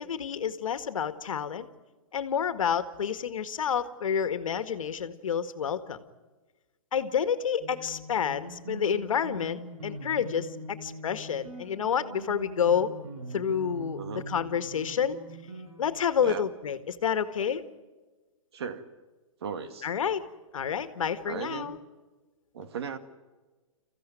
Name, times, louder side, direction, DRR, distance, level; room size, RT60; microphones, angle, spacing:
voice 1, 0.0-1.7 2.1-6.0 6.9-12.9 13.3-15.2 15.8-17.6 19.8-20.2 20.5-21.8, left 7 dB, 70° left, 11 dB, 1.8 m, -29 dB
sound 1, 7.6-15.9, right 1 dB, 80° right, 7.9 m, -42 dB
voice 2, 18.5-19.0 19.4-19.9 21.3-21.8 22.5-23.0, right 6 dB, 50° right, 10 dB, 1.9 m, -37 dB
28.0 x 15.5 x 9.2 m, 1.3 s
hypercardioid pair, 175°, 18 cm